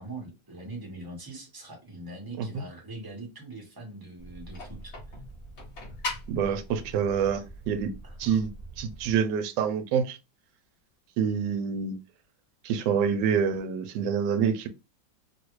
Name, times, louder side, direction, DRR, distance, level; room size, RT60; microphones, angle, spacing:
voice 1, 0.0-4.9 8.0-8.4, right 2 dB, 20° right, 0.6 m, -42 dB
sound 1, 4.2-9.2, left 1 dB, 45° left, 1.0 m, -41 dB
voice 2, 6.3-7.9 8.2-8.5 8.8-10.2 11.2-12.0 12.6-14.7, right 7 dB, 75° right, 1.1 m, -27 dB
3.3 x 2.3 x 3.0 m
omnidirectional pair, 2.1 m